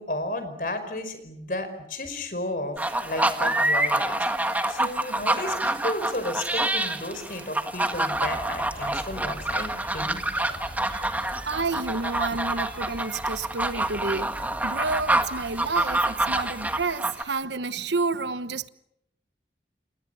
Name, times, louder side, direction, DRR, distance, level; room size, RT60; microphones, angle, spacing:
voice 1, 0.0-10.5, left 1 dB, 50° left, 5.0 m, -33 dB
sound 1, 2.8-17.2, right 1 dB, 10° right, 1.6 m, -27 dB
voice 2, 4.8-5.2 10.0-10.1 11.5-18.7, right 3 dB, 85° right, 1.1 m, -30 dB
sound 2, 8.1-16.9, equal, 25° right, 5.9 m, -44 dB
29.0 x 28.5 x 5.7 m
head